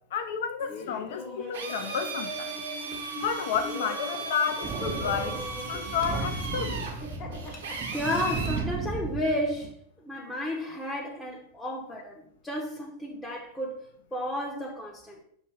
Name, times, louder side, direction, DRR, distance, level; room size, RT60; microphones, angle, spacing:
voice 1, 0.1-2.6 3.1-5.4 5.6-6.9, left 7 dB, 55° left, 8 dB, 0.4 m, -31 dB
Laughter, 0.6-8.7, left 1 dB, 35° left, 0.9 m, -41 dB
Drill, 1.5-8.7, right 4 dB, 65° right, 0.7 m, -37 dB
Thunder, 4.6-9.7, right 4 dB, 25° right, 0.4 m, -35 dB
voice 2, 7.9-9.7 10.0-13.8 14.1-15.2, left 1 dB, 10° left, -3 dB, 0.7 m, -32 dB
5.9 x 2.5 x 3.3 m, 0.68 s
figure-of-eight pair, 90°, 0 cm